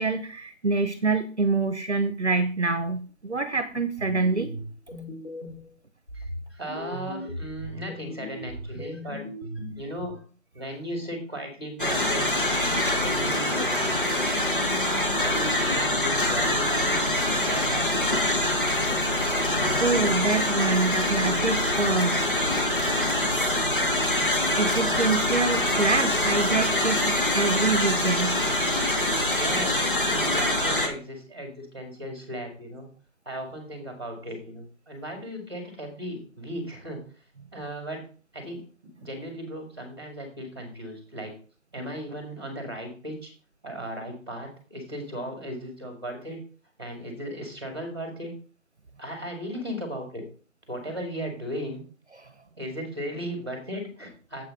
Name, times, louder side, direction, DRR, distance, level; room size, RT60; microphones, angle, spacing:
voice 1, 0.0-4.5 19.8-22.2 24.6-28.4, right 3 dB, 55° right, 11 dB, 0.9 m, -26 dB
sound 1, 3.7-5.7 6.1-10.1, equal, 20° left, 2.9 m, -38 dB
voice 2, 6.5-9.2 9.6-10.2 10.5-14.3 14.8-18.1 29.4-32.9 33.3-37.0 37.5-38.0 38.3-38.6 39.0-41.3 41.7-43.3 43.6-46.4 46.8-48.3 49.0-50.2 50.7-51.8 52.6-54.4, equal, 20° right, 3 dB, 2.0 m, -36 dB
sound 2, 11.8-30.9, left 1 dB, 40° left, 1.7 m, -24 dB
8.6 x 7.6 x 3.8 m, 0.39 s
figure-of-eight pair, 180°, 39 cm